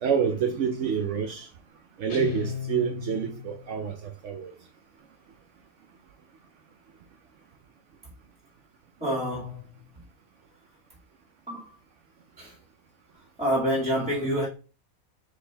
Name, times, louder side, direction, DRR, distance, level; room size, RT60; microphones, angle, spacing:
voice 1, 0.0-1.5 2.0-4.5, right 7 dB, 65° right, 0.8 m, -28 dB
Guitar, 2.1-3.8, left 7 dB, 80° left, 1.7 m, -34 dB
voice 2, 9.0-9.8 11.5-11.6 12.4-12.5 13.4-14.5, equal, 5° right, 1.4 m, -27 dB
4.3 x 3.2 x 3.3 m
omnidirectional pair, 1.5 m